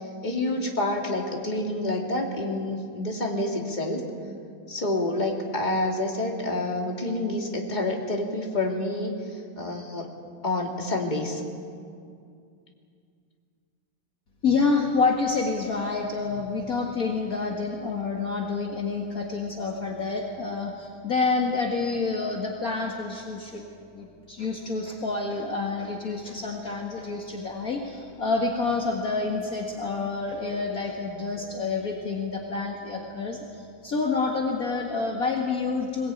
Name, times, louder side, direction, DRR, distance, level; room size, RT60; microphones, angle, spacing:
voice 1, 0.0-4.0 4.7-10.1 10.4-11.4, left 2 dB, 20° left, 1 dB, 2.8 m, -28 dB
voice 2, 14.4-23.6 23.9-36.1, left 4 dB, 50° left, 0 dB, 2.2 m, -28 dB
22.0 x 20.5 x 9.2 m, 2.3 s
omnidirectional pair, 2.1 m